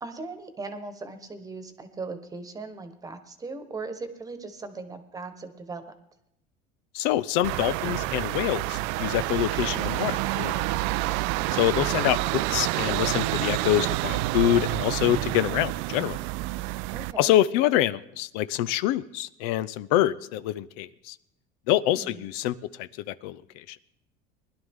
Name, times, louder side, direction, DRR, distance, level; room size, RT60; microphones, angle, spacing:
voice 1, 0.0-5.8 11.4-11.7 16.9-17.3 21.9-22.2, right 3 dB, 15° right, 9 dB, 1.2 m, -38 dB
voice 2, 6.9-10.7 11.5-16.2 17.2-21.2 21.7-22.9 23.2-23.8, left 13 dB, 80° left, 15 dB, 0.6 m, -26 dB
sound 1, 7.4-17.1, right 18 dB, 75° right, 0.4 m, -28 dB
20.0 x 11.5 x 3.6 m, 0.78 s
cardioid pair, 140°, 20 cm